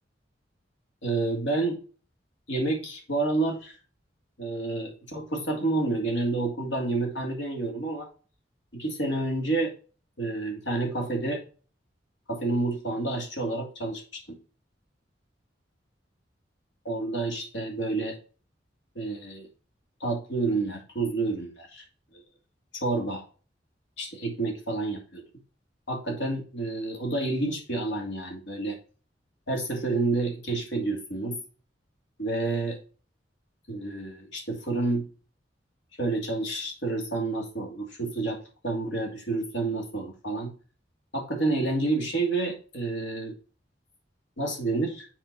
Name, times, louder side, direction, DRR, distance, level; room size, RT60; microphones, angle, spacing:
voice 1, 1.0-1.8 2.5-3.7 4.4-8.1 8.7-9.7 10.2-11.4 12.3-14.4 16.8-18.2 19.0-19.5 20.0-21.8 22.1-22.2 22.7-23.2 24.0-25.2 25.9-28.8 29.5-31.4 32.2-32.8 33.7-35.0 36.0-38.4 38.6-40.5 41.1-43.3 44.4-45.1, right 2 dB, 85° left, 1 dB, 2.7 m, -29 dB
7.6 x 4.5 x 4.1 m, 0.37 s
head